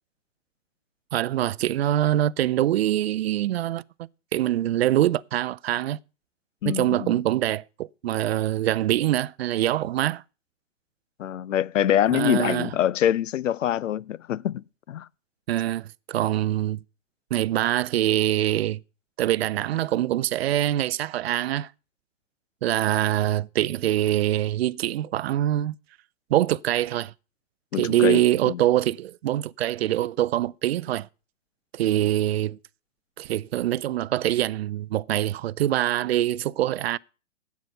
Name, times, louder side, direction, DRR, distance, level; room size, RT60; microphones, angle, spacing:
voice 1, 1.1-3.8 4.3-6.0 6.7-10.2 12.1-12.7 15.5-16.8 17.3-18.8 19.2-21.7 22.6-25.7 26.3-27.1 27.8-31.1 31.7-32.6 33.2-37.0, right 13 dB, 55° right, 0.5 m, -24 dB
voice 2, 6.6-7.2 11.2-15.1 27.7-28.6, left 11 dB, 80° left, 0.6 m, -25 dB
10.5 x 8.3 x 6.4 m
hypercardioid pair, 125°, 38 cm